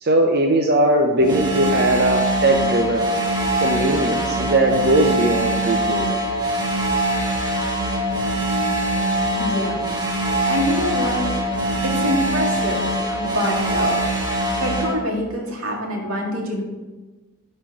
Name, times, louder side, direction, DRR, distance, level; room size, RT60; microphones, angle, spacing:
voice 1, 0.0-3.1 3.6-6.2, right 1 dB, 45° right, 2 dB, 0.7 m, -19 dB
sound 1, 1.2-14.9, right 1 dB, 20° right, 1.3 m, -23 dB
voice 2, 9.3-9.9 10.4-11.3 11.8-14.1 14.6-16.7, equal, 85° right, -1 dB, 2.0 m, -25 dB
11.0 x 4.4 x 4.9 m, 1.2 s
head